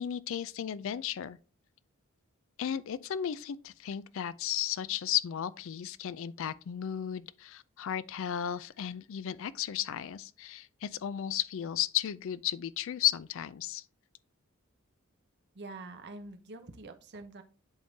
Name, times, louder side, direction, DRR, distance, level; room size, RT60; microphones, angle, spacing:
voice 1, 0.0-1.4 2.6-13.8, left 10 dB, 60° left, 0.3 m, -34 dB
voice 2, 15.5-17.4, right 2 dB, 50° right, 0.8 m, -45 dB
10.5 x 3.6 x 2.7 m
head